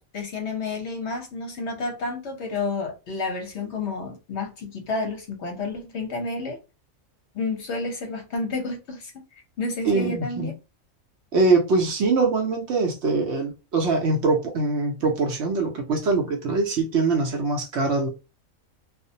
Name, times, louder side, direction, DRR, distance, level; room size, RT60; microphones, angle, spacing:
voice 1, 0.0-6.6 7.3-9.2 9.6-10.5, left 3 dB, 60° left, 0.9 m, -30 dB
voice 2, 9.9-10.5 11.3-18.1, right 3 dB, 65° right, 0.8 m, -23 dB
2.4 x 2.0 x 2.6 m
omnidirectional pair, 1.4 m